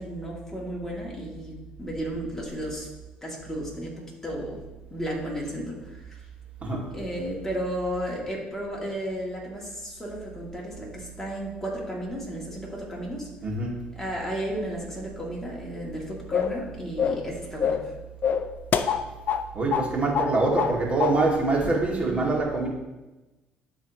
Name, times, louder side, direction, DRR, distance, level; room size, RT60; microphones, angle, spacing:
voice 1, 0.0-2.9 3.2-4.6 4.9-6.2 6.9-13.3 13.9-17.9, equal, 10° left, -3 dB, 2.5 m, -33 dB
voice 2, 13.4-13.8 19.5-22.7, right 2 dB, 35° right, -2 dB, 2.3 m, -24 dB
sound 1, 16.3-16.6 17.0-17.3 17.6-17.9 18.2-19.4 19.7-19.9 20.1-20.7 21.0-21.2, left 7 dB, 55° left, 0.5 m, -25 dB
12.0 x 4.0 x 3.0 m, 1.1 s
supercardioid pair, 75°, 4 cm